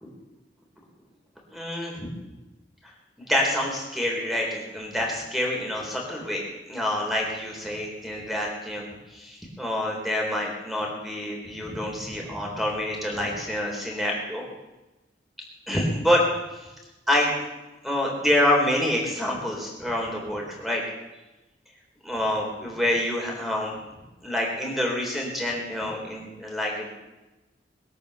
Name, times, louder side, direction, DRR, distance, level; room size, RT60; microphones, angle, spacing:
voice 1, 1.5-2.1 3.2-8.8 9.1-14.4 15.7-16.2 16.5-16.7 17.1-17.3 17.8-20.8 22.0-23.7 24.2-26.9, left 1 dB, ahead, -1 dB, 3.9 m, -27 dB
21.5 x 8.8 x 6.8 m, 1.1 s
head